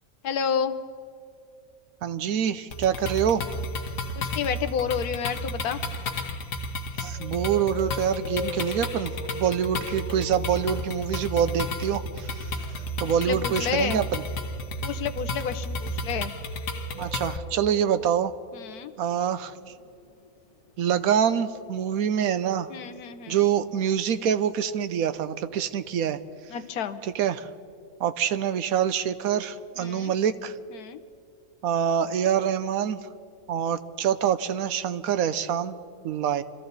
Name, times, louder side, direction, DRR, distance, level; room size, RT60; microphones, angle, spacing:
voice 1, 0.2-0.7 4.2-5.8 13.0-14.0 14.8-16.3 18.5-18.9 22.7-23.4 26.5-27.0 29.8-30.1 30.7-31.0, left 7 dB, 90° left, 11 dB, 1.4 m, -30 dB
voice 2, 2.0-3.4 7.0-12.5 13.0-14.2 16.9-18.3 19.0-19.5 20.8-22.7 23.3-26.2 27.0-27.5 28.0-30.6 31.6-33.1 33.5-35.8 36.0-36.4, right 9 dB, 75° right, 12 dB, 1.1 m, -26 dB
sound 1, 2.7-17.4, left 1 dB, 65° left, 1.5 m, -33 dB
sound 2, 7.1-13.0 15.2-23.2 23.4-23.5 23.9-24.0, left 4 dB, 30° left, 0.8 m, -42 dB
25.5 x 14.0 x 4.0 m, 2.4 s
omnidirectional pair, 1.6 m